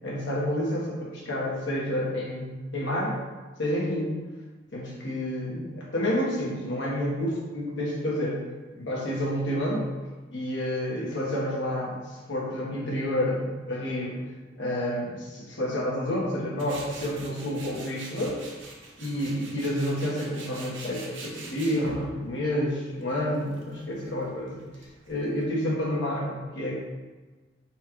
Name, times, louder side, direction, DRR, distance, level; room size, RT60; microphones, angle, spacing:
voice 1, 0.0-3.2 3.6-4.1 4.7-8.4 8.7-9.8 10.3-14.2 14.6-18.4 19.0-24.6 25.1-26.8, left 1 dB, 75° left, -5 dB, 1.2 m, -29 dB
Tools, 16.6-25.4, right 2 dB, 85° right, 0.8 m, -44 dB
4.2 x 2.4 x 4.5 m, 1.3 s
head